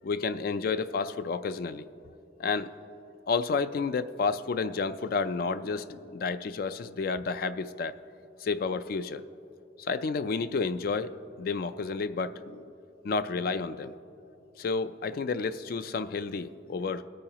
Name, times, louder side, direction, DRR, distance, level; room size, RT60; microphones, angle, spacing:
voice 1, 0.0-1.9 2.4-2.7 3.3-8.0 8.4-9.2 9.8-12.6 13.0-13.9 14.6-17.0, left 4 dB, 50° left, 12 dB, 0.3 m, -31 dB
20.0 x 8.7 x 2.9 m, 2.8 s
head